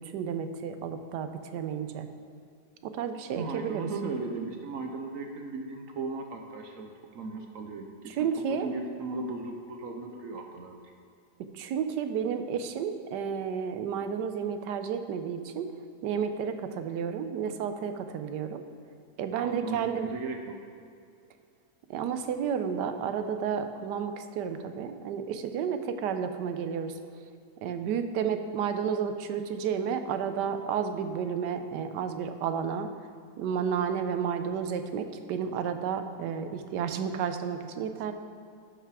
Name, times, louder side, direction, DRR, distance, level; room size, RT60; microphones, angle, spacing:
voice 1, 0.0-2.1 2.8-3.9 8.1-8.7 11.5-15.7 16.0-18.6 19.2-20.1 21.9-26.9 27.6-32.9 33.4-38.1, right 7 dB, 80° right, 8 dB, 1.2 m, -31 dB
voice 2, 3.3-10.8 19.4-20.6, right 3 dB, 60° right, 3 dB, 1.0 m, -37 dB
11.5 x 5.8 x 4.8 m, 2.4 s
omnidirectional pair, 1.8 m